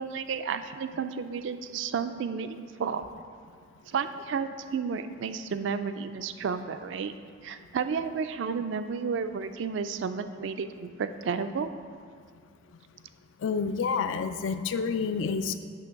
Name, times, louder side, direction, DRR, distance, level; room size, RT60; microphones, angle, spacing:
voice 1, 0.0-3.0 3.9-7.1 7.4-11.7, right 6 dB, 65° right, 10 dB, 0.3 m, -32 dB
voice 2, 13.4-15.6, left 5 dB, 70° left, 10 dB, 0.4 m, -29 dB
8.5 x 3.0 x 6.4 m, 2.1 s
head